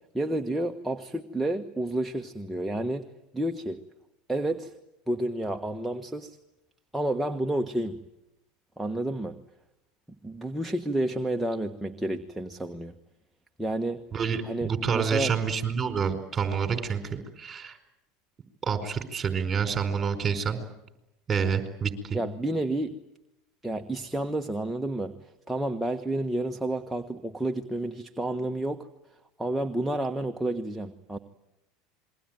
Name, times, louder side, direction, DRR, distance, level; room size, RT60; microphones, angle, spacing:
voice 1, 0.1-3.1 3.3-3.8 4.3-4.7 5.1-6.4 6.9-8.0 8.8-9.4 10.2-12.9 13.6-14.0 14.4-15.3 22.1-23.0 23.6-28.9 29.4-31.2, right 1 dB, 5° right, 4 dB, 1.3 m, -30 dB
voice 2, 14.1-17.8 18.6-20.6 21.3-22.2, right 6 dB, 25° right, 8 dB, 4.6 m, -28 dB
27.0 x 22.0 x 9.2 m, 0.92 s
hypercardioid pair, 95°, 0 cm